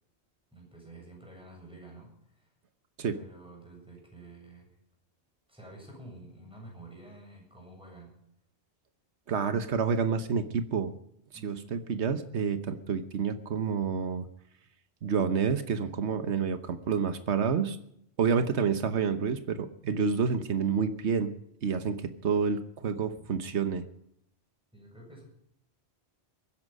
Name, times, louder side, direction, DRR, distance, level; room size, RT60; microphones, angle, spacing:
voice 1, 0.5-2.5 3.1-4.7 5.5-8.1 11.3-11.9 24.7-25.2, right 2 dB, 5° right, -2 dB, 7.7 m, -50 dB
voice 2, 9.3-10.9 11.4-14.2 15.0-17.8 18.2-21.3 21.6-23.8, right 6 dB, 85° right, 9 dB, 1.3 m, -29 dB
23.0 x 10.5 x 5.3 m, 0.71 s
omnidirectional pair, 1.1 m